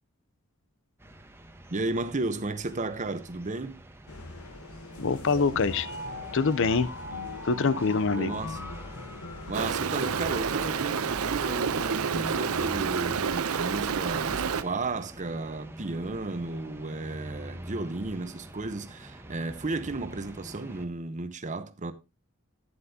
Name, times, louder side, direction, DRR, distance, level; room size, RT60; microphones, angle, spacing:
sound 1, 1.0-20.9, right 1 dB, 10° right, 1.1 m, -45 dB
voice 1, 1.7-3.8 8.1-8.6 9.5-21.9, right 2 dB, 35° right, 0.9 m, -33 dB
sound 2, 4.1-10.7, left 2 dB, 85° left, 1.2 m, -40 dB
voice 2, 5.0-5.9 6.3-6.9 7.4-8.4, left 4 dB, 65° left, 0.6 m, -25 dB
Stream, 9.5-14.6, right 6 dB, 90° right, 0.6 m, -29 dB
11.5 x 9.7 x 2.8 m
head